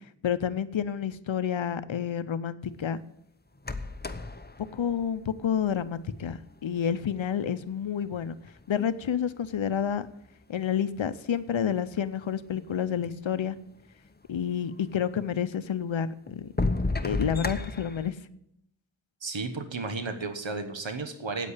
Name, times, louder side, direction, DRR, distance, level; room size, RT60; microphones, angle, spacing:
voice 1, 0.2-3.0 4.7-8.4 8.7-10.1 10.5-13.6 14.3-16.5 17.0-18.2, left 8 dB, 90° left, 14 dB, 0.7 m, -29 dB
sound 1, 3.6-5.9 6.9-7.0 7.6-8.8 9.4-10.3 11.1-11.2 11.3-11.4 12.1-12.2 12.4-13.2 14.8-14.9 15.5-15.6 16.3-18.1, left 2 dB, 20° left, 0.9 m, -32 dB
voice 2, 19.2-21.5, right 3 dB, 75° right, 8 dB, 1.2 m, -33 dB
9.2 x 8.4 x 8.2 m, 0.79 s
wide cardioid pair, 45°, 45 cm